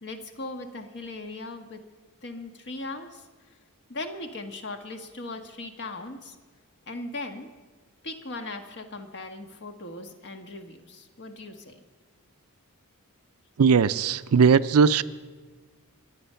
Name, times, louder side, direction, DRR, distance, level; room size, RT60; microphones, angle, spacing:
voice 1, 0.0-1.8 2.2-3.3 3.9-6.3 6.9-7.5 8.0-11.8, left 2 dB, 50° left, 5 dB, 1.5 m, -38 dB
voice 2, 13.6-15.0, right 6 dB, 70° right, 15 dB, 0.5 m, -19 dB
23.5 x 8.7 x 5.7 m, 1.3 s
head